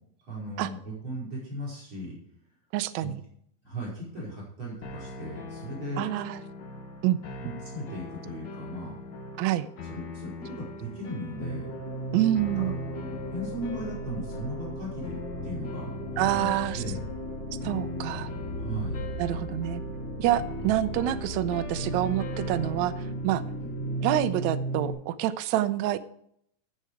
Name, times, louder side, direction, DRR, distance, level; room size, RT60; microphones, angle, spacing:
voice 1, 0.3-2.2 3.0-3.1 3.6-6.0 7.4-9.0 9.9-11.7 12.5-12.7 13.3-17.0 18.6-19.2 20.6-20.8 23.6-23.7, right 1 dB, 35° right, -5 dB, 5.8 m, -37 dB
voice 2, 2.7-3.2 6.0-6.4 7.0-7.2 9.4-9.7 12.1-12.8 16.2-16.8 17.6-18.3 19.2-19.8 20.2-22.9 23.2-23.4 24.0-26.0, right 13 dB, 85° right, 11 dB, 1.6 m, -27 dB
sound 1, 4.8-24.1, left 3 dB, 75° left, 1.0 m, -42 dB
sound 2, 11.3-24.9, right 1 dB, 40° left, 3.5 m, -35 dB
14.0 x 6.8 x 4.9 m, 0.70 s
omnidirectional pair, 4.0 m